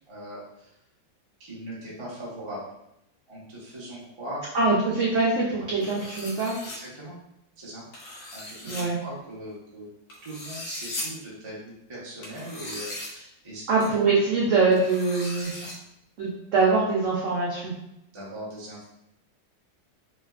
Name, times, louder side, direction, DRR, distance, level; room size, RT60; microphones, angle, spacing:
voice 1, 0.1-0.8 1.4-2.6 3.3-4.7 6.7-7.2 7.6-7.8 8.3-9.9 10.2-13.9 15.4-15.7 18.1-18.8, right 1 dB, 40° right, -7 dB, 0.4 m, -40 dB
voice 2, 4.5-6.5 8.6-9.0 13.7-15.5 16.2-17.7, right 3 dB, 80° right, -5 dB, 0.6 m, -23 dB
sound 1, 5.8-6.8 7.9-8.8 10.1-11.0 12.2-13.1 13.8-13.9 14.7-15.7, left 1 dB, 85° left, 1.6 m, -38 dB
3.2 x 2.9 x 2.4 m, 0.82 s
omnidirectional pair, 2.1 m